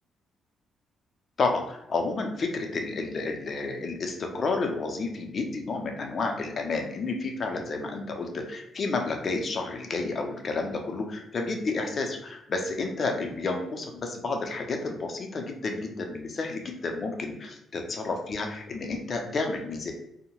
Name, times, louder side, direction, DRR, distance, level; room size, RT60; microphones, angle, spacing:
voice 1, 1.4-19.9, left 3 dB, 45° left, 3 dB, 0.5 m, -31 dB
2.7 x 2.0 x 2.9 m, 0.81 s
cardioid pair, 90°, 0 cm